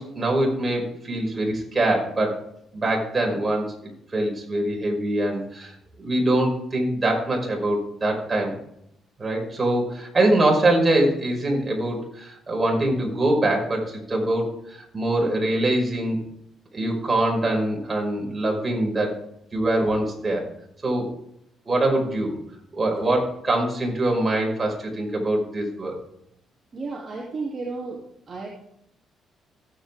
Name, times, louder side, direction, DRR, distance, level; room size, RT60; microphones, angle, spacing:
voice 1, 0.0-2.4 2.7-8.5 9.2-16.2 16.7-19.2 19.5-20.5 20.8-21.1 21.7-22.4 22.7-26.0, right 1 dB, 25° right, 0 dB, 5.4 m, -23 dB
voice 2, 26.7-28.0 28.3-28.5, right 3 dB, 40° right, -4 dB, 2.8 m, -32 dB
17.0 x 8.8 x 3.6 m, 0.76 s
cardioid pair, 90°, 0 cm